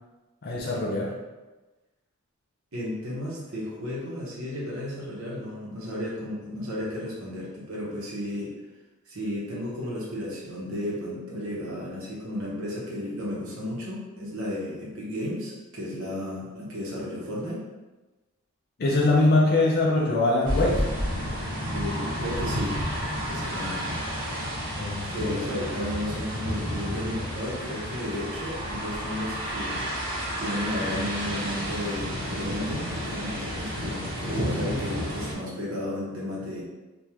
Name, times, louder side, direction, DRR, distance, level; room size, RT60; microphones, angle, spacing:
voice 1, 0.4-1.1 18.8-20.8 24.8-25.4, left 2 dB, 45° left, -3 dB, 0.4 m, -23 dB
voice 2, 2.7-8.5 9.1-17.6 21.7-22.8 23.1-24.0 25.1-29.9 30.4-36.6, left 1 dB, 75° right, -6 dB, 0.9 m, -33 dB
sound 1, 20.4-35.3, equal, 40° right, 0.8 m, -31 dB
3.5 x 2.3 x 2.9 m, 1.2 s
head